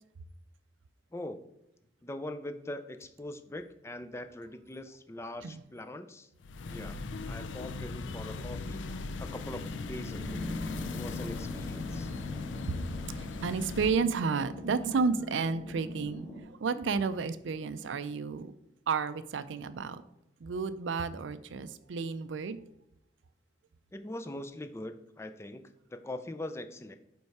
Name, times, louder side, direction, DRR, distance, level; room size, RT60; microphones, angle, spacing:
voice 1, 2.0-6.3 6.7-7.0 7.3-8.8 9.2-10.5 10.8-12.1 23.9-25.6 25.9-27.0, left 1 dB, 15° left, 9 dB, 0.4 m, -42 dB
sound 1, 6.4-13.9, left 3 dB, 80° left, 0.4 m, -39 dB
sound 2, 9.2-16.4, left 2 dB, 50° left, 2.5 m, -42 dB
voice 2, 13.1-18.5 18.9-20.0 20.4-22.6, right 5 dB, 85° right, 13 dB, 0.4 m, -32 dB
5.3 x 4.6 x 4.6 m, 0.85 s
head